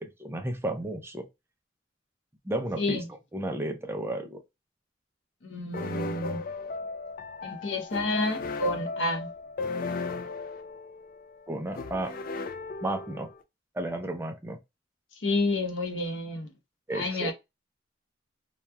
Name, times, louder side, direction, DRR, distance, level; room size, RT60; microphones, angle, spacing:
voice 1, 0.0-1.3 2.5-3.0 3.3-4.4 11.5-12.2 12.8-13.3 13.7-14.6 16.9-17.3, right 1 dB, 15° right, 0.4 m, -33 dB
voice 2, 5.4-6.4 7.4-9.3 15.2-16.5 16.9-17.3, left 2 dB, 85° left, 0.8 m, -29 dB
sound 1, 5.7-13.4, left 3 dB, 50° left, 0.4 m, -36 dB
2.9 x 2.2 x 2.2 m
head